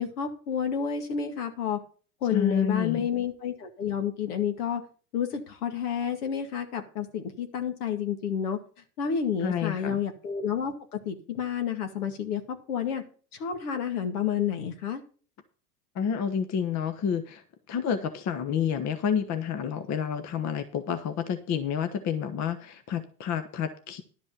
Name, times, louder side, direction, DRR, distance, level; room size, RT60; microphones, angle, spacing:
voice 1, 0.0-1.8 2.2-4.8 5.1-8.6 9.0-13.0 13.4-15.0, left 8 dB, 70° left, 6 dB, 2.2 m, -30 dB
voice 2, 2.3-3.1 9.4-10.0 15.9-17.4 17.7-24.0, left 7 dB, 35° left, 9 dB, 1.1 m, -29 dB
11.5 x 5.3 x 7.1 m, 0.39 s
hypercardioid pair, 95°, 46 cm